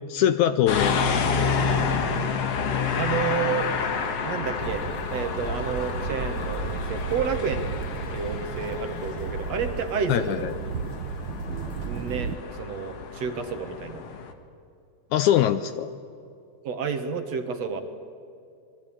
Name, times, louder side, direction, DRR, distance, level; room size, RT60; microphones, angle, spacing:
voice 1, 0.1-1.5 10.1-10.5 15.1-15.9, left 11 dB, 75° left, 12 dB, 1.9 m, -23 dB
sound 1, 0.7-14.3, left 5 dB, 50° left, 2.4 m, -29 dB
voice 2, 3.0-3.7 4.2-4.8 5.1-7.6 8.1-10.5 11.8-14.0 16.6-17.8, right 6 dB, 55° right, 7 dB, 2.3 m, -30 dB
sound 2, 4.6-12.4, right 5 dB, 85° right, 1.1 m, -34 dB
26.0 x 21.5 x 8.8 m, 2.5 s
omnidirectional pair, 3.9 m